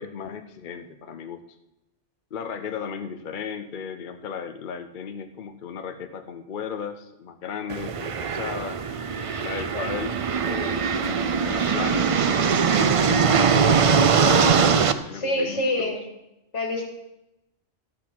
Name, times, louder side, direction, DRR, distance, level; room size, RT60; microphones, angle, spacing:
voice 1, 0.0-1.4 2.3-8.8 9.4-10.2 10.4-15.9, left 7 dB, 50° left, 8 dB, 0.7 m, -35 dB
sound 1, 7.7-14.9, right 6 dB, 60° right, 0.3 m, -21 dB
voice 2, 15.1-16.0 16.5-16.8, left 1 dB, 80° left, 1 dB, 2.3 m, -26 dB
12.5 x 6.2 x 5.9 m, 0.90 s
omnidirectional pair, 1.2 m